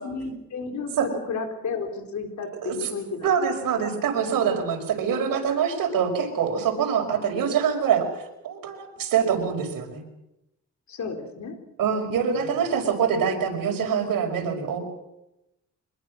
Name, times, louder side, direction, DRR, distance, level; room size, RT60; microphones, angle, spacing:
voice 1, 0.0-3.3 3.8-3.9 10.9-11.6 12.3-12.6, left 4 dB, 60° left, 5 dB, 4.0 m, -33 dB
voice 2, 3.2-10.0 11.8-14.8, right 7 dB, 80° right, 3 dB, 5.6 m, -25 dB
25.0 x 21.5 x 6.3 m, 0.89 s
cardioid pair, 135°, 33 cm